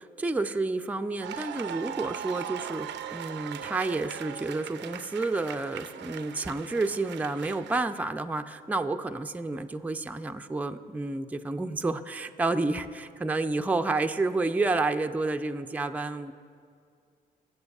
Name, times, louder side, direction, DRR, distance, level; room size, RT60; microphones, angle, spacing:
voice 1, 0.0-16.3, right 3 dB, 5° right, 7 dB, 0.4 m, -30 dB
sound 1, 1.2-7.8, right 9 dB, 65° right, 0.5 m, -39 dB
18.5 x 7.5 x 2.4 m, 2.2 s
supercardioid pair, 55°, 20 cm